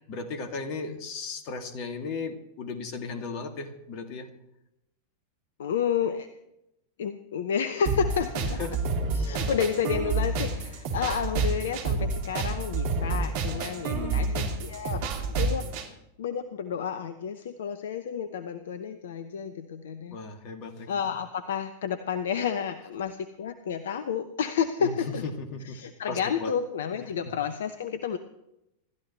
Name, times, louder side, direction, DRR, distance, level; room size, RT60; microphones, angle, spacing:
voice 1, 0.0-4.3 8.4-9.0 9.4-9.5 13.9-14.5 20.1-21.1 24.8-25.8 26.1-26.5, left 4 dB, 40° left, 6 dB, 2.3 m, -36 dB
voice 2, 5.6-6.3 7.0-8.6 9.1-15.7 16.2-20.2 20.9-25.2 25.6-28.2, left 7 dB, 60° left, 12 dB, 0.8 m, -31 dB
sound 1, 7.9-15.9, right 3 dB, 50° right, 2.8 m, -29 dB
26.5 x 13.0 x 3.2 m, 0.86 s
figure-of-eight pair, 90°, 0 cm